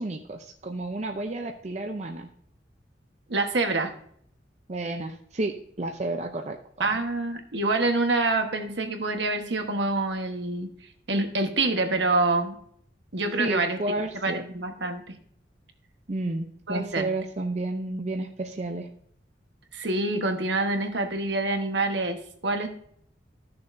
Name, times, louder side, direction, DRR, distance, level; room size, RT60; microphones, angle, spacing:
voice 1, 0.0-2.3 4.7-6.9 13.4-14.5 16.1-18.9, right 2 dB, 35° right, 4 dB, 0.6 m, -31 dB
voice 2, 3.3-3.9 6.8-10.7 11.1-12.6 13.1-13.8 14.2-15.2 16.7-17.1 19.7-22.7, right 2 dB, 70° right, 5 dB, 1.3 m, -26 dB
13.5 x 6.8 x 2.6 m, 0.64 s
head